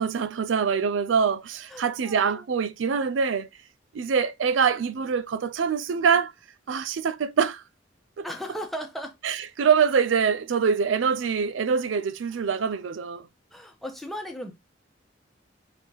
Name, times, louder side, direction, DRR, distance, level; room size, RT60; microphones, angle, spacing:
voice 1, 0.0-3.5 3.9-6.3 6.7-7.6 8.2-8.3 9.2-13.3, right 6 dB, 85° right, 0.4 m, -24 dB
voice 2, 1.7-2.5 8.2-9.2 12.3-12.4 13.5-14.5, equal, ahead, 1.0 m, -36 dB
4.8 x 3.5 x 2.9 m
head